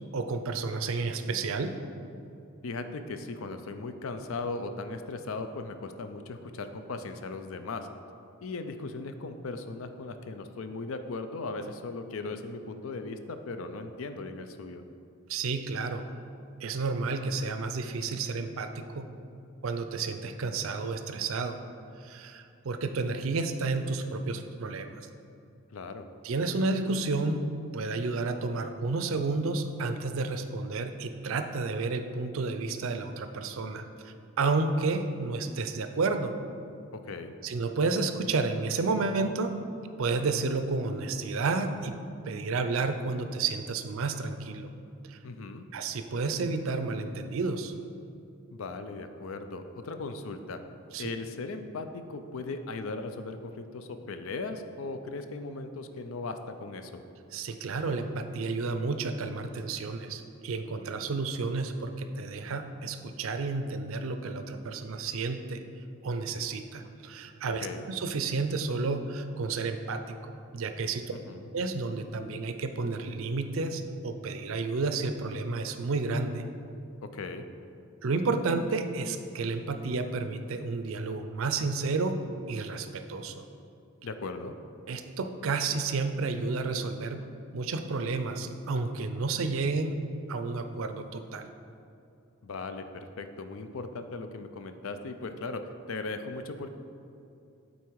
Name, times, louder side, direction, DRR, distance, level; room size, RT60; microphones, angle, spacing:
voice 1, 0.1-1.7 15.3-16.1 16.6-19.0 19.6-21.6 22.0-25.0 26.2-27.4 27.7-36.3 37.4-39.5 40.0-42.0 42.3-44.7 45.1-45.2 45.7-47.7 50.9-51.1 57.3-65.6 66.0-71.1 71.5-76.4 78.0-82.2 82.5-83.4 84.9-87.3 87.5-89.9 90.3-91.5, right 3 dB, 75° right, 8 dB, 0.5 m, -31 dB
voice 2, 2.6-7.9 8.4-14.8 25.7-26.1 37.0-37.4 45.2-45.7 48.5-50.6 51.0-57.0 67.6-67.9 71.1-71.5 77.1-77.5 84.0-84.5 92.4-96.7, left 3 dB, 75° left, 8 dB, 0.5 m, -38 dB
8.3 x 4.1 x 4.6 m, 2.6 s
head